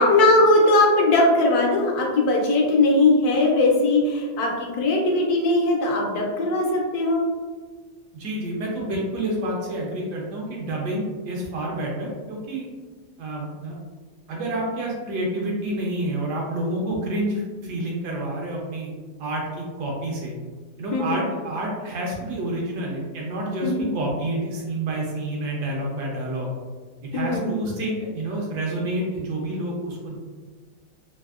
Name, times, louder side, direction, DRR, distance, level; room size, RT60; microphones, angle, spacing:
voice 1, 0.0-7.2 20.9-21.2 23.6-23.9 27.1-27.6, left 2 dB, 70° left, -1 dB, 1.0 m, -19 dB
voice 2, 8.1-12.7 13.2-13.8 14.3-18.9 19.2-20.4 20.8-26.5 27.1-30.2, right 1 dB, 70° right, -2 dB, 1.1 m, -28 dB
3.4 x 2.5 x 2.4 m, 1.4 s
omnidirectional pair, 2.0 m